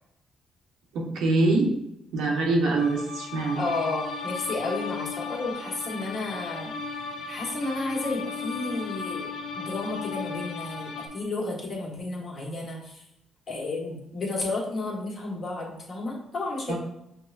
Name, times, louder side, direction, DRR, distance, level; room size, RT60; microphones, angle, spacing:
voice 1, 0.9-1.7 2.1-3.6 16.7-16.8, right 2 dB, 85° right, -1 dB, 0.9 m, -24 dB
sound 1, 2.8-11.1, left 5 dB, 80° left, 0.6 m, -35 dB
voice 2, 3.5-6.7 7.3-13.0 13.5-16.8, left 2 dB, 45° left, -3 dB, 1.4 m, -32 dB
5.9 x 2.2 x 2.5 m, 0.83 s
cardioid pair, 90°, 0 cm